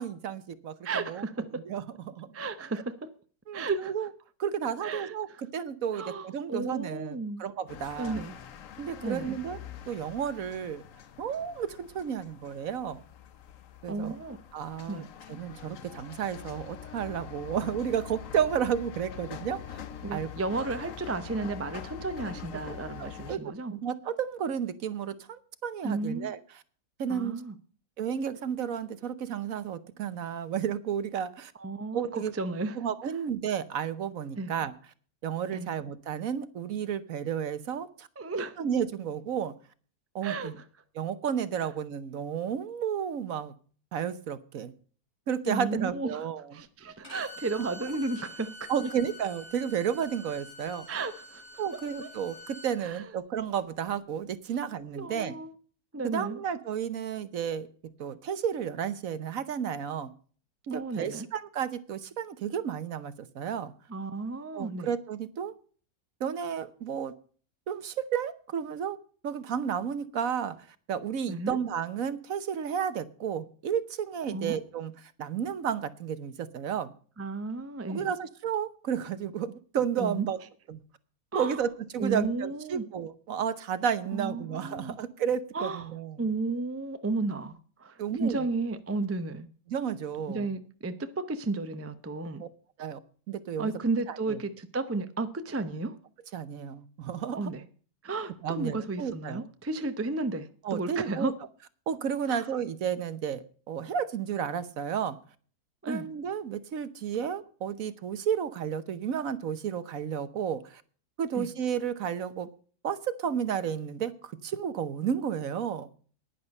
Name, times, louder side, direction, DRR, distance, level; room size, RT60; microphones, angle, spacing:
voice 1, 0.0-0.8 1.1-1.2 1.7-2.3 3.5-4.1 4.4-8.2 8.8-9.6 9.9-10.8 11.2-13.0 13.8-14.1 14.5-19.8 20.1-20.3 23.0-26.4 27.0-27.3 28.0-31.5 31.9-32.3 32.7-34.7 35.2-38.1 38.6-39.5 40.1-40.6 40.9-43.5 43.9-44.7 45.3-46.6 47.6-47.7 48.7-50.9 51.6-55.3 56.1-57.7 58.0-60.1 60.7-63.7 64.5-65.5 66.2-67.1 67.7-69.0 69.2-70.6 70.9-76.9 77.9-80.4 80.7-80.8 81.3-86.2 88.0-88.5 89.7-90.5 92.4-92.5 92.8-93.0 93.3-93.7 94.1-94.4 95.6-95.7 96.3-97.5 98.4-99.4 100.6-101.3 101.9-105.2 105.9-110.8 111.2-112.5 112.8-115.9, right 8 dB, 65° right, 1.3 m, -32 dB
voice 2, 0.8-1.6 2.3-2.9 3.5-3.9 4.8-5.1 5.9-7.4 8.0-8.3 9.0-9.4 13.9-14.4 14.9-15.1 20.0-23.7 25.8-26.3 27.1-27.5 31.6-32.8 34.4-34.5 35.5-35.7 38.2-38.6 40.2-40.6 45.5-46.3 46.5-48.9 50.9-51.4 52.0-52.1 52.8-53.0 55.0-55.5 55.9-56.4 60.7-61.3 63.9-64.9 71.3-71.6 74.3-74.6 77.2-78.1 80.0-80.3 81.3-81.6 82.0-82.8 84.1-85.0 85.5-85.8 86.2-89.5 90.3-92.4 93.6-96.0 97.3-97.6 98.0-101.4 102.3-102.5 105.8-106.1 111.3-111.5, right 3 dB, 20° right, 0.4 m, -33 dB
sound 1, 7.7-23.4, left 9 dB, 60° left, 1.2 m, -44 dB
Bowed string instrument, 47.0-52.7, left 1 dB, 30° left, 7.9 m, -47 dB
10.5 x 10.5 x 5.3 m
omnidirectional pair, 1.6 m